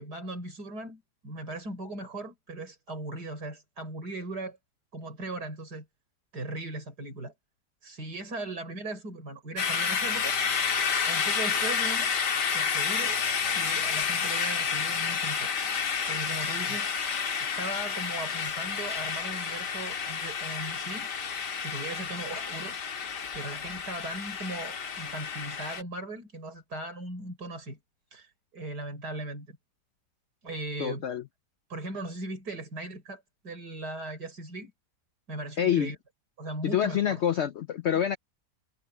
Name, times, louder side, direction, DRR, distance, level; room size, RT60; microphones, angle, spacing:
voice 1, 0.0-4.6 4.9-5.9 6.3-7.3 7.8-10.4 11.0-12.1 12.5-13.2 13.5-15.5 16.1-16.9 17.4-21.1 21.6-22.8 23.3-27.8 28.1-29.6 30.4-31.2 31.7-34.7 35.3-36.0 36.4-37.2, right 2 dB, 70° right, 6.7 m, -38 dB
sound 1, 9.6-25.8, left 6 dB, 85° left, 2.3 m, -30 dB
voice 2, 30.8-31.2 35.6-35.9 36.6-38.2, left 9 dB, 65° left, 0.7 m, -26 dB
omnidirectional pair, 1.8 m